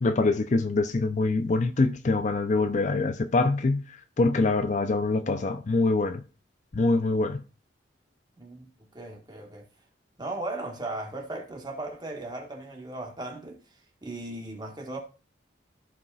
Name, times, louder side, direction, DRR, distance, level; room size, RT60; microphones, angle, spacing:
voice 1, 0.0-3.8 4.2-6.2 6.7-7.4, left 3 dB, 40° left, 0.5 m, -24 dB
voice 2, 8.4-8.7 8.9-9.6 10.2-13.6 14.0-15.0, right 2 dB, 20° right, 1.4 m, -37 dB
14.5 x 5.0 x 2.4 m
head